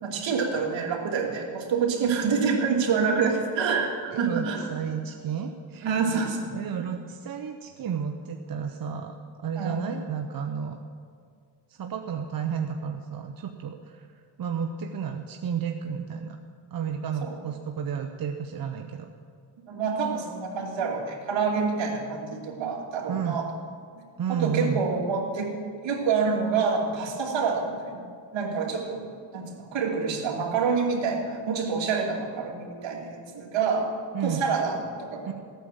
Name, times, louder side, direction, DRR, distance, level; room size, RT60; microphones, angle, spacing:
voice 1, 0.0-4.7 5.8-6.5 9.6-9.9 17.3-17.4 19.7-23.5 24.3-29.1 29.3-33.9 34.2-35.3, right 5 dB, 70° right, 0 dB, 2.7 m, -27 dB
voice 2, 4.1-5.9 6.5-10.8 11.7-14.1 14.4-16.4 16.7-19.1 23.1-23.4 24.2-24.8 34.1-34.5 35.3-35.4, right 7 dB, 50° right, 4 dB, 1.0 m, -32 dB
16.0 x 9.0 x 7.2 m, 2.2 s
cardioid pair, 85°, 46 cm